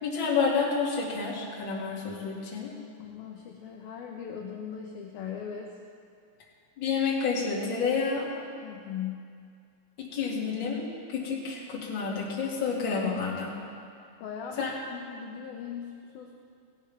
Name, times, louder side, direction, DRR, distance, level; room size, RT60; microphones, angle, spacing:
voice 1, 0.0-2.7 6.8-8.3 10.0-13.5 14.6-14.7, left 5 dB, 35° left, -4 dB, 2.2 m, -29 dB
voice 2, 3.0-5.7 8.6-9.3 14.2-16.3, left 7 dB, 75° left, 0 dB, 2.3 m, -39 dB
17.5 x 17.5 x 3.5 m, 2.3 s
omnidirectional pair, 5.2 m